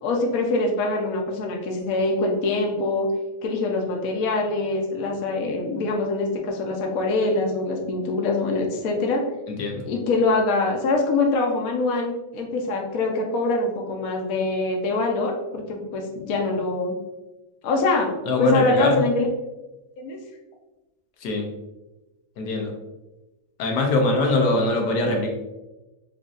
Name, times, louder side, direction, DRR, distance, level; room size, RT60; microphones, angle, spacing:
voice 1, 0.0-3.1 3.4-9.2 9.9-16.9 17.6-18.1 18.4-19.3 20.0-20.2, left 2 dB, 65° left, 1 dB, 1.0 m, -24 dB
voice 2, 9.5-9.8 18.3-19.0 21.2-21.5 22.4-22.7 23.6-25.3, left 2 dB, 90° left, 1 dB, 1.3 m, -22 dB
5.2 x 2.5 x 2.4 m, 1.0 s
omnidirectional pair, 1.8 m